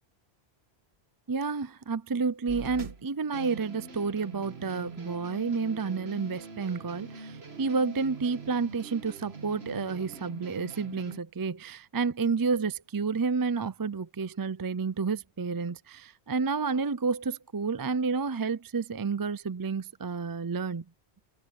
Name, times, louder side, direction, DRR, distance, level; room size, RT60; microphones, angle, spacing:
voice 1, 1.3-20.8, right 5 dB, 35° right, 0.3 m, -30 dB
sound 1, 2.5-11.2, right 4 dB, 70° right, 1.9 m, -44 dB
omnidirectional pair, 1.1 m